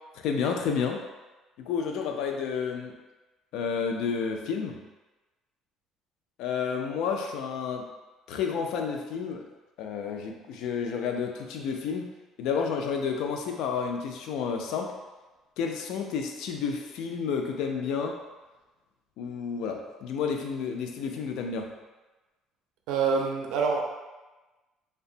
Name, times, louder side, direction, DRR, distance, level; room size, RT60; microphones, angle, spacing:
voice 1, 0.2-1.0 1.6-3.0 3.5-4.8 6.4-7.9 8.3-9.5 9.8-12.1 12.4-14.9 15.6-18.2 19.2-21.7, left 6 dB, 70° left, 3 dB, 0.3 m, -30 dB
voice 2, 22.9-23.9, right 5 dB, 75° right, 1 dB, 0.4 m, -26 dB
2.7 x 2.2 x 2.6 m, 1.2 s
cardioid pair, 170°, 0 cm